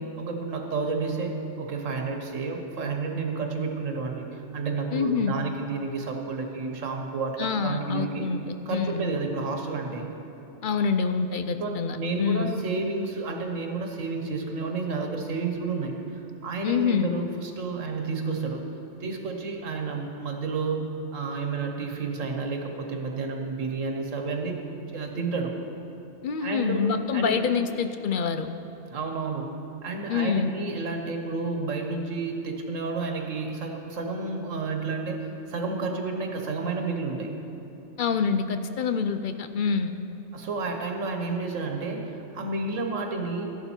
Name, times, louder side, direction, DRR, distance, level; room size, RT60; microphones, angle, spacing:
voice 1, 0.0-8.3 8.7-10.1 11.6-18.6 19.0-24.6 24.9-25.5 26.4-26.8 27.1-27.3 28.9-29.5 29.8-35.2 35.5-37.3 40.3-43.4, right 4 dB, 85° right, 3 dB, 1.4 m, -31 dB
voice 2, 4.9-5.3 7.4-8.4 8.7-9.1 10.6-12.6 16.6-17.1 26.2-28.5 30.1-30.5 38.0-39.9, left 6 dB, 55° left, 9 dB, 0.6 m, -26 dB
13.5 x 11.5 x 4.4 m, 2.9 s
omnidirectional pair, 1.3 m